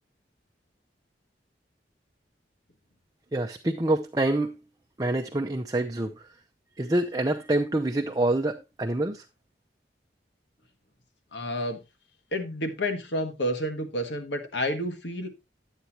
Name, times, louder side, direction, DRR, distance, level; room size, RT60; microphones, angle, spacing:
voice 1, 3.3-4.6 5.0-6.3 6.8-9.2, right 1 dB, 20° right, 0.6 m, -26 dB
voice 2, 11.3-11.8 12.3-15.3, equal, 85° left, 1.6 m, -30 dB
11.5 x 8.1 x 2.9 m
head